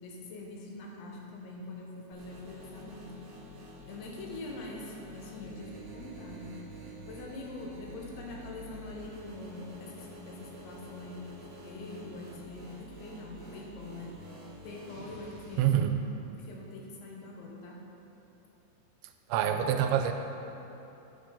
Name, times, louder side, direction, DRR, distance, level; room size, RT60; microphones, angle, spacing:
voice 1, 0.0-3.1 3.9-6.6 7.1-11.3 11.6-14.1 14.6-15.9 16.4-17.8, left 2 dB, 80° left, -1 dB, 3.4 m, -43 dB
sound 1, 2.1-15.7, right 1 dB, 60° right, 1.5 m, -48 dB
voice 2, 15.6-16.0 19.3-20.1, right 10 dB, 85° right, 6 dB, 2.9 m, -26 dB
9.6 x 9.3 x 3.8 m, 2.9 s
omnidirectional pair, 5.3 m